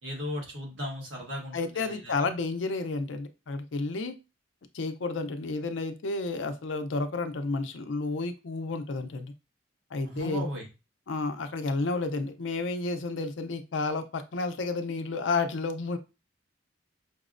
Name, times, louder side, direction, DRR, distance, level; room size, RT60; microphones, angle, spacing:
voice 1, 0.0-2.3 10.0-10.7, equal, 75° right, -1 dB, 1.3 m, -36 dB
voice 2, 1.5-4.1 4.7-9.3 9.9-10.4 11.1-16.0, left 3 dB, 75° left, 8 dB, 0.5 m, -31 dB
5.3 x 2.0 x 2.5 m, 0.28 s
head